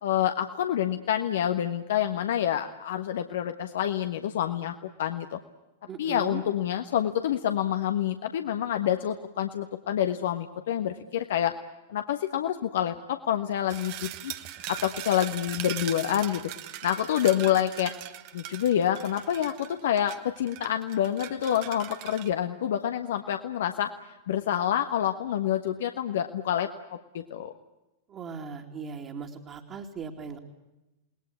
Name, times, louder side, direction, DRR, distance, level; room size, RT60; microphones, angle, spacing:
voice 1, 0.0-5.4 6.0-11.6 11.9-14.3 14.7-16.5 16.8-17.9 18.3-23.9 24.3-27.5, left 10 dB, 60° left, 7 dB, 1.3 m, -27 dB
voice 2, 5.9-6.4 28.1-30.4, right 6 dB, 30° right, -1 dB, 2.8 m, -38 dB
sound 1, 13.7-22.3, right 14 dB, 45° right, 1.4 m, -40 dB
29.0 x 20.5 x 8.3 m, 1.0 s
figure-of-eight pair, 95°, 0 cm